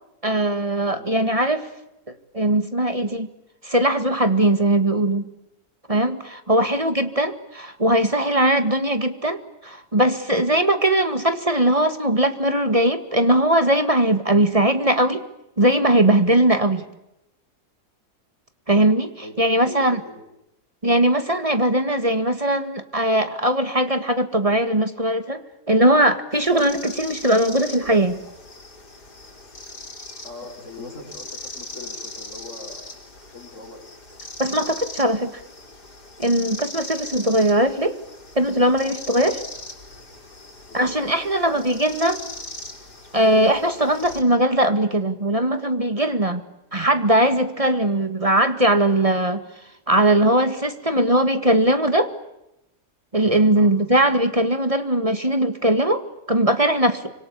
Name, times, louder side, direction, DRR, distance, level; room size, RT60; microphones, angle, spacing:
voice 1, 0.2-1.7 2.1-3.3 3.6-5.3 5.9-15.2 15.6-16.8 18.7-20.0 20.8-25.4 25.7-28.2 34.4-35.4 36.2-38.0 38.4-39.4 40.7-42.2 43.1-46.4 46.7-49.4 49.9-52.1 53.1-57.1, right 1 dB, 20° right, 9 dB, 2.0 m, -20 dB
voice 2, 19.2-20.2 30.2-32.8 33.3-33.8 40.7-40.9 53.5-53.7, left 3 dB, 50° left, 2 dB, 6.3 m, -40 dB
sound 1, 26.3-44.2, left 2 dB, 80° left, 5.2 m, -39 dB
26.0 x 25.5 x 8.6 m, 0.87 s
omnidirectional pair, 1.7 m